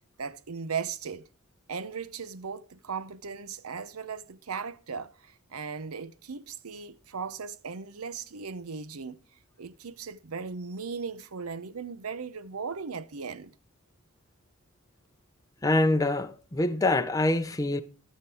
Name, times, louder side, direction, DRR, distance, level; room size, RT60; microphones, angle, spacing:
voice 1, 0.2-1.3 1.7-9.2 9.6-13.5, right 5 dB, 85° right, 0.8 m, -37 dB
voice 2, 15.6-17.8, left 2 dB, 15° left, 0.6 m, -25 dB
14.5 x 6.7 x 4.7 m
head